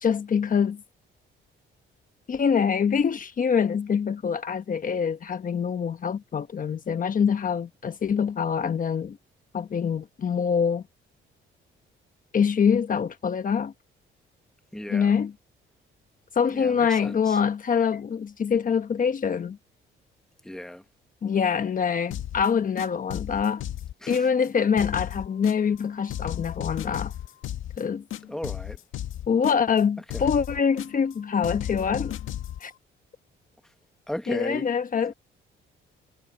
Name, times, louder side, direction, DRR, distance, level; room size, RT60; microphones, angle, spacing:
voice 1, 0.0-0.8 2.3-9.2 9.5-10.8 12.3-13.7 14.9-15.3 16.3-19.6 21.2-23.6 24.1-27.1 27.8-28.0 29.3-32.2 32.6-32.7 34.3-35.1, left 6 dB, 40° left, 1.2 m, -25 dB
voice 2, 14.7-15.1 16.5-17.4 20.4-20.8 24.0-24.3 28.3-28.8 30.1-30.3 33.6-33.7 34.1-34.7 35.1-35.2, left 1 dB, 5° left, 1.4 m, -35 dB
sound 1, 22.1-22.5 22.8-24.5 24.8-25.8 26.1-27.8 28.1-29.8 30.1-31.1 31.4-32.6, left 11 dB, 80° left, 2.1 m, -34 dB
cardioid pair, 105°, 21 cm